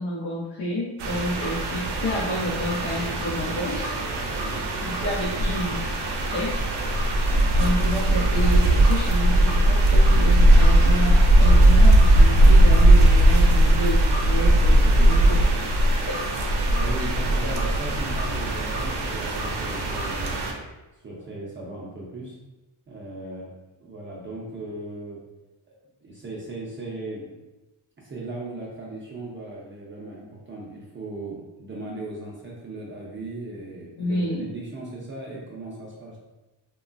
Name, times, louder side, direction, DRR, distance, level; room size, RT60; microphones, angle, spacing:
voice 1, 0.0-3.8 4.8-6.6 7.0-7.2 7.5-15.4 16.1-16.2 17.0-17.1 34.0-34.5, equal, 70° left, -6 dB, 0.7 m, -29 dB
sound 1, 1.0-20.5, right 1 dB, 70° right, 0.6 m, -19 dB
voice 2, 4.3-4.7 16.7-20.4 21.0-22.4 22.9-23.5 23.8-25.2 25.7-25.8 26.0-27.4 28.0-36.2, right 2 dB, 30° right, -5 dB, 0.4 m, -37 dB
2.9 x 2.2 x 2.5 m, 1.1 s
cardioid pair, 125°, 42 cm